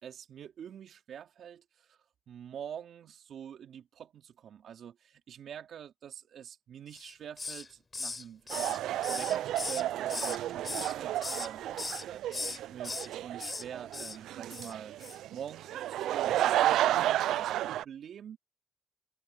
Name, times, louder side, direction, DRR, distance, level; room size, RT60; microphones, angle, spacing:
voice 1, 0.0-2.0 2.3-8.8 9.1-15.0 15.3-18.4, right 9 dB, 70° right, 3.8 m, -46 dB
Hiss, 6.9-7.7 7.9-10.4 10.6-11.5 11.8-12.0 12.3-13.1 13.4-13.6 13.9-14.2 14.5-14.7 15.0-15.2, left 3 dB, 30° left, 5.2 m, -38 dB
sound 1, 8.5-17.8, right 13 dB, 85° right, 0.4 m, -31 dB
cardioid pair, 70°, 0 cm